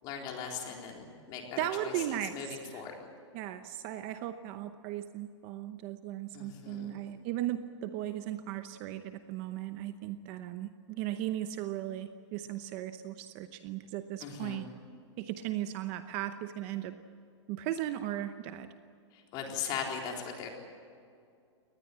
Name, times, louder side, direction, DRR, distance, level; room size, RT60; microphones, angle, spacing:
voice 1, 0.0-3.0 6.3-6.9 14.2-14.7 19.1-20.5, left 7 dB, 30° left, 1 dB, 3.9 m, -39 dB
voice 2, 1.6-2.8 3.3-14.7 15.2-16.9 17.5-18.7, right 12 dB, 30° right, 10 dB, 0.8 m, -37 dB
23.5 x 19.5 x 8.7 m, 2.3 s
hypercardioid pair, 165°, 15 cm